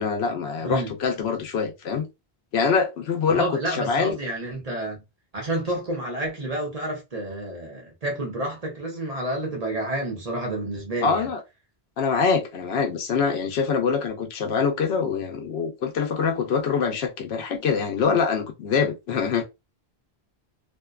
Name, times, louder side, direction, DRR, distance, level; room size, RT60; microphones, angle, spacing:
voice 1, 0.0-2.1 2.5-4.2 11.0-11.4 12.0-19.4, left 5 dB, 85° left, 0.9 m, -24 dB
voice 2, 0.6-0.9 3.3-5.0 5.3-11.3, right 1 dB, 40° right, 0.8 m, -29 dB
2.5 x 2.1 x 2.3 m
omnidirectional pair, 1.1 m